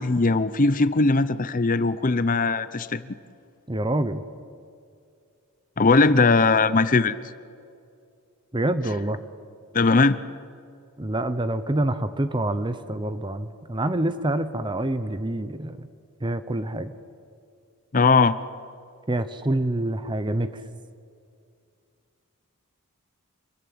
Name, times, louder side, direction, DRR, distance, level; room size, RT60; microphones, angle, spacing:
voice 1, 0.0-3.0 5.8-7.2 9.7-10.2 17.9-18.4, left 3 dB, 35° left, 14 dB, 0.7 m, -19 dB
voice 2, 3.7-4.2 8.5-9.2 11.0-15.9 16.2-16.9 19.1-20.6, right 1 dB, 20° right, 11 dB, 0.8 m, -26 dB
27.0 x 21.0 x 8.7 m, 2.4 s
head